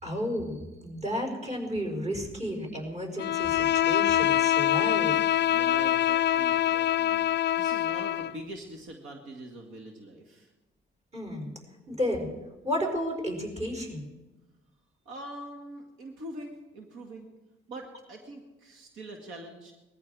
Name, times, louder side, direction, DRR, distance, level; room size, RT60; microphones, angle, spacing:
voice 1, 0.0-5.1 11.1-11.5 11.9-12.3 12.6-14.1, equal, 35° right, 1 dB, 5.0 m, -32 dB
Bowed string instrument, 3.2-8.4, left 12 dB, 60° left, 0.4 m, -25 dB
voice 2, 5.4-10.5 15.1-17.3 17.7-19.7, right 1 dB, 80° right, 2 dB, 2.0 m, -43 dB
20.0 x 14.5 x 4.8 m, 1.1 s
cardioid pair, 90°, 20 cm